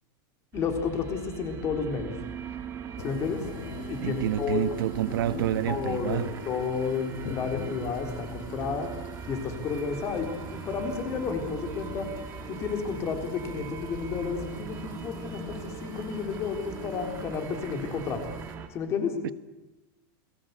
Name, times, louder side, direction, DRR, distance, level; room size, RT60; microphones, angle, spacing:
voice 1, 0.5-2.1 3.0-3.4 3.9-4.8 5.7-8.9 9.3-12.1 12.5-18.2 18.7-19.1, left 5 dB, 25° left, 3.6 m, -31 dB
sound 1, 0.5-18.7, right 7 dB, 20° right, 1.9 m, -40 dB
sound 2, 3.0-18.6, left 7 dB, 55° left, 5.2 m, -45 dB
voice 2, 4.0-6.3 19.2-19.3, right 11 dB, 75° right, 1.3 m, -28 dB
29.5 x 22.5 x 8.2 m
supercardioid pair, 175°, 12 cm